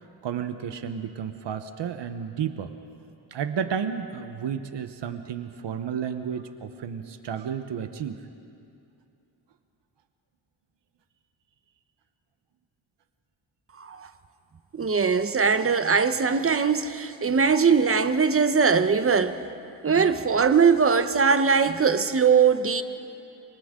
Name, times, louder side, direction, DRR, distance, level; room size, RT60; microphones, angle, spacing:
voice 1, 0.2-2.7 3.3-8.2, right 7 dB, 70° right, 8 dB, 1.1 m, -32 dB
voice 2, 13.8-14.1 14.7-19.4 19.8-22.8, right 5 dB, 30° right, 10 dB, 1.0 m, -21 dB
27.5 x 26.0 x 3.8 m, 2.6 s
cardioid pair, 110°, 44 cm